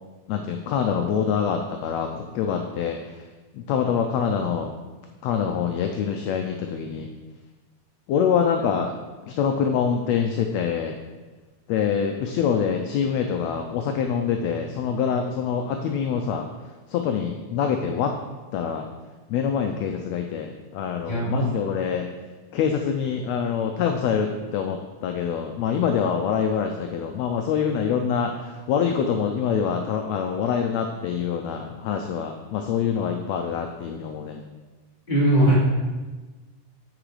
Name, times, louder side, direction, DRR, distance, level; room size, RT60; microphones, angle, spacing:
voice 1, 0.3-3.2 3.5-4.7 5.2-7.1 8.1-8.9 9.2-11.0 11.7-16.5 16.9-18.1 18.5-18.9 19.3-22.1 22.5-34.4, left 7 dB, 80° left, 4 dB, 1.6 m, -25 dB
voice 2, 21.1-21.4 35.1-35.5, right 1 dB, 15° left, -8 dB, 2.6 m, -19 dB
8.8 x 4.9 x 4.8 m, 1.3 s
omnidirectional pair, 3.5 m